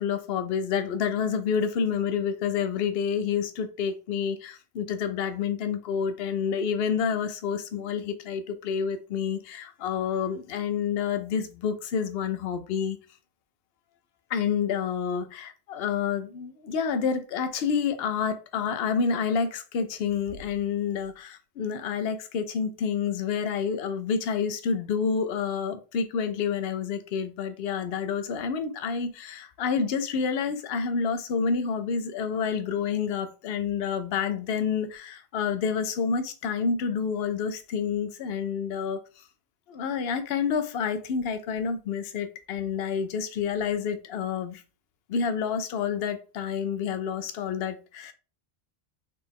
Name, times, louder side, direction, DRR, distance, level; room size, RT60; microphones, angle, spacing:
voice 1, 0.0-13.0 14.3-39.0 39.7-44.6 45.1-48.1, left 6 dB, 70° left, 0.8 m, -28 dB
4.2 x 3.3 x 3.5 m
omnidirectional pair, 1.0 m